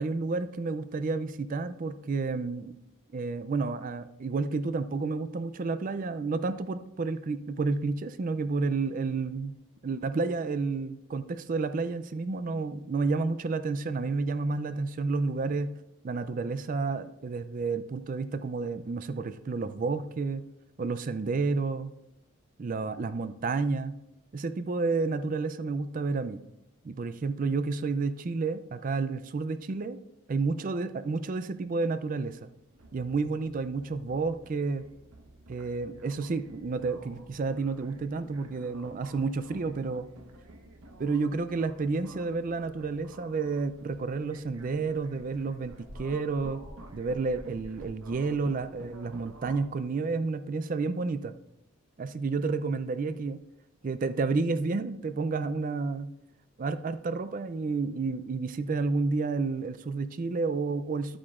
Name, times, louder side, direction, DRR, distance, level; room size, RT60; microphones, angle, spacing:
voice 1, 0.0-2.7 3.1-9.5 9.8-15.7 16.0-20.4 20.8-21.9 22.6-23.9 24.3-26.4 26.8-30.0 30.3-32.5 32.9-34.8 35.5-40.1 41.0-46.6 46.9-51.3 52.0-53.4 53.8-56.1 56.6-61.2, right 4 dB, 40° right, 12 dB, 0.4 m, -30 dB
sound 1, 32.3-49.6, right 2 dB, 90° right, 1.1 m, -51 dB
sound 2, 43.9-44.0 44.3-48.5, equal, 75° right, 2.1 m, -50 dB
11.5 x 8.7 x 2.5 m, 0.84 s
head